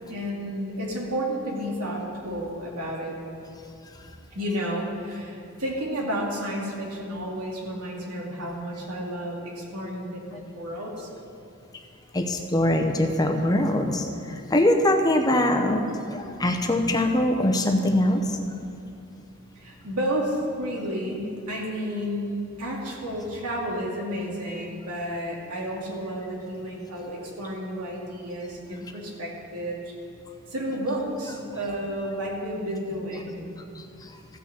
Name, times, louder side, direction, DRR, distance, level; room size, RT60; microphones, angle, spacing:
voice 1, 0.1-3.2 4.3-11.1 19.6-29.9 30.5-33.5 33.9-34.0, equal, 90° right, -2 dB, 2.4 m, -31 dB
voice 2, 12.1-15.8 16.1-18.4, left 1 dB, 15° left, 4 dB, 0.8 m, -22 dB
14.5 x 6.1 x 7.4 m, 2.6 s
head